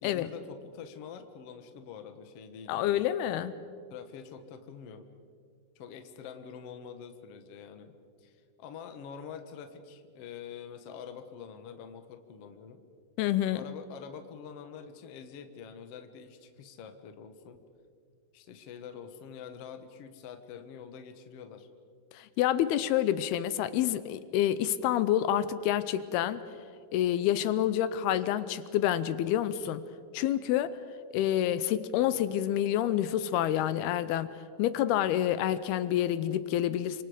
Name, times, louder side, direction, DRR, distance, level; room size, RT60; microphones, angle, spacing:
voice 1, 0.0-3.1 3.9-5.1 5.7-12.8 13.5-17.6 18.3-21.7 31.9-32.4, left 7 dB, 60° left, 8 dB, 1.6 m, -46 dB
voice 2, 2.7-3.5 13.2-13.6 22.1-26.4 26.9-29.9 30.1-30.8 31.1-37.0, left 11 dB, 80° left, 14 dB, 2.6 m, -28 dB
29.0 x 25.5 x 5.1 m, 2.3 s
omnidirectional pair, 4.7 m